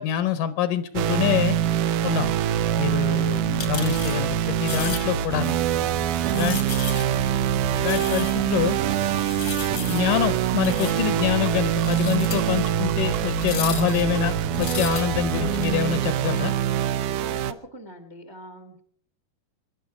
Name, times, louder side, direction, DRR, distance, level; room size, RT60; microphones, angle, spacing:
voice 1, 0.0-1.6 2.0-2.3 2.8-5.6 6.3-6.6 7.8-8.8 9.9-16.6, left 10 dB, 80° left, 12 dB, 2.3 m, -26 dB
sound 1, 1.0-17.5, right 11 dB, 80° right, 2.3 m, -24 dB
sound 2, 2.1-15.7, left 6 dB, 55° left, 1.4 m, -35 dB
sound 3, 7.5-7.6 7.9-8.0 8.4-14.4, right 6 dB, 60° right, 2.6 m, -43 dB
voice 2, 17.2-18.8, equal, 35° right, 6 dB, 0.4 m, -43 dB
25.5 x 11.0 x 4.8 m, 0.62 s
omnidirectional pair, 3.8 m